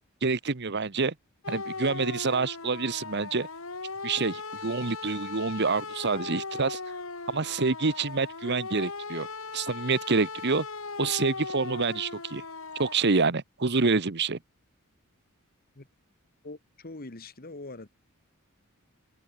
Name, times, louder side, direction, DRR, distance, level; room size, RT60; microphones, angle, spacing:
voice 1, 0.2-1.1 1.5-3.5 4.0-6.8 7.3-9.3 9.5-10.7 11.0-12.4 12.8-14.4, right 4 dB, 50° right, 1.0 m, -27 dB
sound 1, 1.4-13.0, left 4 dB, 65° left, 2.6 m, -38 dB
voice 2, 16.4-17.9, left 2 dB, 45° left, 1.5 m, -43 dB
head